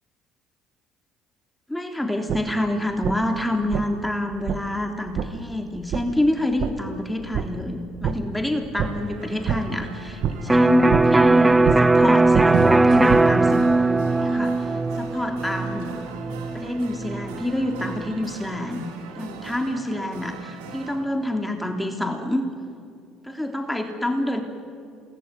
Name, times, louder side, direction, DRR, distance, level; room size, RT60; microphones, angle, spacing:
voice 1, 1.7-16.0 16.5-18.9 19.1-22.5 23.2-24.4, left 1 dB, 5° left, 4 dB, 3.4 m, -27 dB
sound 1, 2.3-2.4 3.0-3.1 3.7-3.8 4.5-4.6 5.1-5.3 5.9-6.0 6.6-6.7 7.3-7.5 8.0-8.1 8.8-8.9 9.5-9.6 10.2-10.3 10.9-11.0 11.6-11.8 12.3-13.2, right 8 dB, 60° right, 1.7 m, -24 dB
sound 2, 8.8-21.0, right 5 dB, 80° right, 3.9 m, -41 dB
Electric guitar, 10.5-18.1, right 2 dB, 15° right, 0.8 m, -19 dB
28.0 x 21.0 x 9.4 m, 2.4 s
hypercardioid pair, 65°, 0 cm